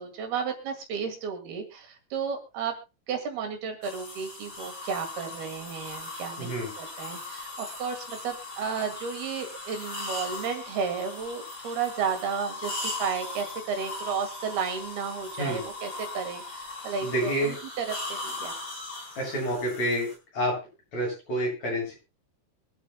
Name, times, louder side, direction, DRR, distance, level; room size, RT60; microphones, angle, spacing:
voice 1, 0.0-2.7 3.1-6.5 6.8-18.6, right 6 dB, 70° right, 5 dB, 3.8 m, -33 dB
sound 1, 3.8-20.1, left 2 dB, 25° left, 4.1 m, -39 dB
voice 2, 6.4-6.7 15.4-15.6 17.0-17.6 19.2-20.1 20.3-20.6 20.9-22.0, equal, 40° left, -2 dB, 8.4 m, -28 dB
24.5 x 9.8 x 2.3 m, 0.28 s
omnidirectional pair, 4.7 m